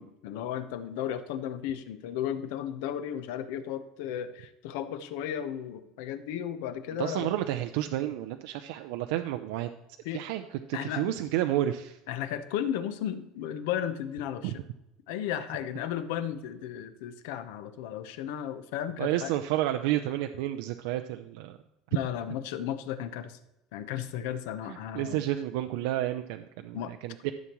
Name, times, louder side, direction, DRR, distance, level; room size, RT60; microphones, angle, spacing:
voice 1, 0.0-7.3 10.0-10.2 10.7-11.2 12.1-14.6 15.1-19.3 21.9-23.4 23.7-25.2 26.7-26.9, left 10 dB, 80° left, 11 dB, 0.9 m, -34 dB
voice 2, 7.0-9.7 10.1-10.4 10.7-12.0 19.0-21.6 24.7-27.3, right 13 dB, 75° right, 7 dB, 0.5 m, -30 dB
13.5 x 7.1 x 3.1 m, 0.89 s
cardioid pair, 180°, 0 cm